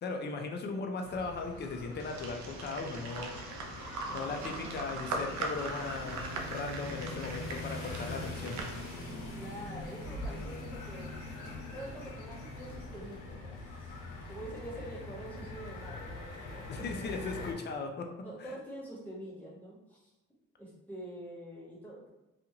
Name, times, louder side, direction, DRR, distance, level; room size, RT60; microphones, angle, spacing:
voice 1, 0.0-3.3 4.1-6.2 6.5-8.6 16.7-18.1 18.4-18.6, left 4 dB, 35° left, 3 dB, 0.5 m, -38 dB
sound 1, 1.0-17.5, left 2 dB, 85° left, 0.7 m, -43 dB
sound 2, 2.0-9.3, right 3 dB, 70° right, 0.5 m, -41 dB
voice 2, 4.1-4.8 9.3-11.2 11.7-14.0 14.3-16.9 17.4-17.5 18.2-20.1 20.6-22.1, right 1 dB, 5° left, -7 dB, 1.3 m, -46 dB
2.5 x 2.4 x 2.8 m, 1.0 s
cardioid pair, 90°, 30 cm